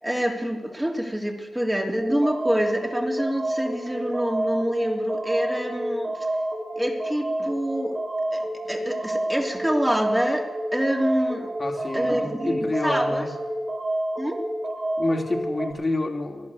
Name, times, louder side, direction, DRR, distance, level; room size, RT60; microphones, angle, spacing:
voice 1, 0.0-6.1 6.8-8.0 8.3-11.5 11.9-13.2 14.2-14.4, equal, 10° right, 2 dB, 3.1 m, -26 dB
sound 1, 2.0-15.7, right 1 dB, 50° right, 3.7 m, -29 dB
voice 2, 11.6-13.3 15.0-16.5, left 2 dB, 40° left, 3 dB, 2.6 m, -28 dB
16.0 x 11.5 x 7.1 m, 1.2 s
supercardioid pair, 40°, 0 cm